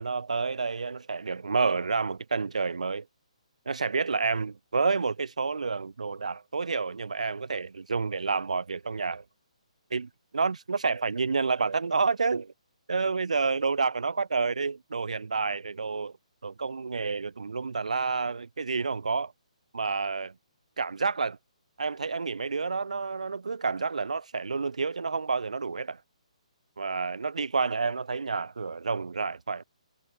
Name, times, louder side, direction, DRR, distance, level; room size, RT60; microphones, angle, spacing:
voice 1, 0.0-3.1 3.7-9.2 9.9-12.5 12.9-16.1 16.4-19.3 19.7-20.3 20.8-21.4 21.8-26.0 26.8-29.6, right 4 dB, 70° right, 1.0 m, -29 dB
figure-of-eight pair, 135°, 4 cm